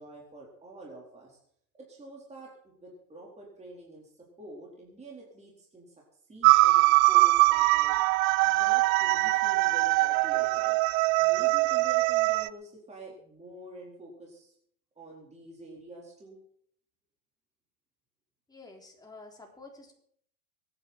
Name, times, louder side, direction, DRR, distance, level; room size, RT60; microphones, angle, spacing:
voice 1, 0.0-1.4 1.8-5.9 6.3-8.0 8.5-10.8 11.2-14.5 15.0-16.4, right 2 dB, 15° right, -3 dB, 4.2 m, -47 dB
sound 1, 6.4-12.5, right 22 dB, 60° right, 0.6 m, -22 dB
voice 2, 18.5-19.9, left 3 dB, 10° left, 0 dB, 3.7 m, -49 dB
24.5 x 9.8 x 4.4 m, 0.64 s
hypercardioid pair, 110°, 49 cm